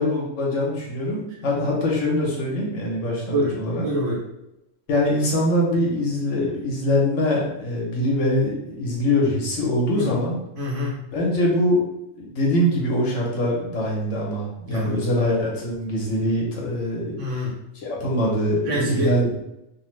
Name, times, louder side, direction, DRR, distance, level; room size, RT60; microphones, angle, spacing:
voice 1, 0.0-3.9 4.9-10.4 11.1-11.8 12.2-17.2 17.8-19.4, left 1 dB, 75° left, -3 dB, 1.2 m, -23 dB
voice 2, 3.3-4.2 9.9-10.1 10.5-11.0 14.7-14.9 17.1-17.5 18.6-19.4, equal, 70° right, -4 dB, 1.3 m, -26 dB
3.0 x 2.1 x 3.1 m, 0.88 s
omnidirectional pair, 1.3 m